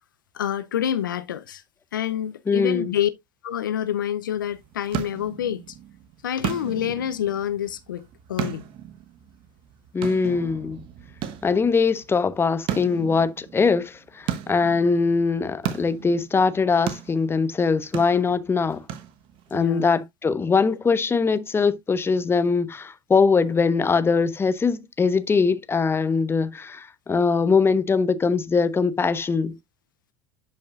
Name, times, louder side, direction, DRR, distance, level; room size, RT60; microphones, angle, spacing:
voice 1, 0.3-1.6 1.9-3.1 3.4-5.8 6.2-8.6 19.5-19.9, left 10 dB, 90° left, 0.5 m, -27 dB
voice 2, 2.5-2.9 9.9-10.8 11.4-18.8 19.5-29.5, left 5 dB, 25° left, 1.0 m, -22 dB
sound 1, 4.4-19.6, right 10 dB, 60° right, 1.1 m, -36 dB
10.5 x 5.3 x 2.4 m
hypercardioid pair, 75°, 10 cm